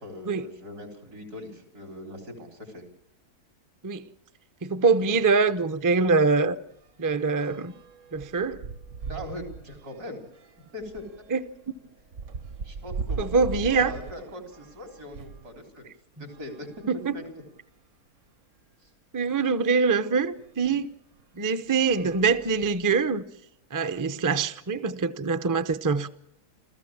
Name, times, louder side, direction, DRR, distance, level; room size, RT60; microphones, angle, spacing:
voice 1, 0.0-2.8 9.1-10.2 10.7-11.0 12.6-15.9 16.2-16.7 17.1-17.2 18.8-18.9, left 1 dB, 80° right, 4.4 m, -40 dB
voice 2, 4.6-6.6 7.0-7.7 8.1-8.6 11.3-11.4 13.2-13.9 16.9-17.1 19.1-20.9 21.4-23.2 23.7-26.1, right 4 dB, 25° right, 0.4 m, -24 dB
sound 1, 5.0-5.2 5.6-5.8 6.0-15.5 16.2-17.6 18.3-18.4 18.6-18.7 20.4-20.5 21.1-21.4 21.8-23.1, right 5 dB, 55° right, 1.3 m, -40 dB
28.0 x 14.5 x 7.3 m
omnidirectional pair, 1.6 m